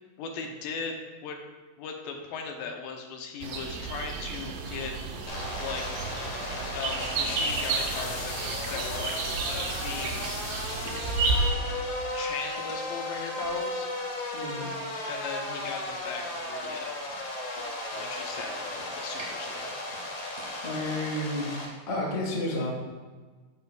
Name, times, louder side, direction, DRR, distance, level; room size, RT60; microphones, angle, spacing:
voice 1, 0.2-1.4 1.8-4.9 5.6-5.9 6.7-10.3 11.5-13.9 15.1-17.0 17.9-19.8, left 5 dB, 85° left, 3 dB, 2.6 m, -38 dB
sound 1, 3.4-11.5, right 4 dB, 75° right, 2.3 m, -32 dB
sound 2, 5.3-21.7, left 1 dB, 55° left, 2.2 m, -35 dB
sound 3, 6.3-21.7, right 1 dB, 35° right, 1.2 m, -51 dB
voice 2, 14.3-14.7 20.6-21.5 21.9-22.7, left 1 dB, 30° left, -3 dB, 1.3 m, -31 dB
11.5 x 7.0 x 2.3 m, 1.4 s
omnidirectional pair, 4.0 m